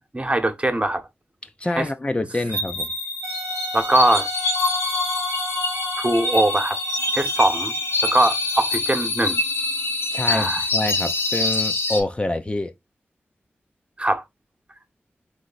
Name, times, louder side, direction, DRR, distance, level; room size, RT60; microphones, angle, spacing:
voice 1, 0.1-1.0 1.8-1.9 3.7-4.3 6.0-6.8 7.1-7.7 8.0-9.4 10.3-10.6 14.0-14.2, right 1 dB, 30° right, 1.0 m, -21 dB
voice 2, 1.4-2.9 10.1-12.7, left 2 dB, 25° left, 0.6 m, -26 dB
sound 1, 2.5-12.0, left 3 dB, 75° left, 1.5 m, -25 dB
Wind instrument woodwind instrument, 3.2-8.9, right 2 dB, 85° right, 0.8 m, -36 dB
3.5 x 3.3 x 4.0 m
cardioid pair, 50°, 4 cm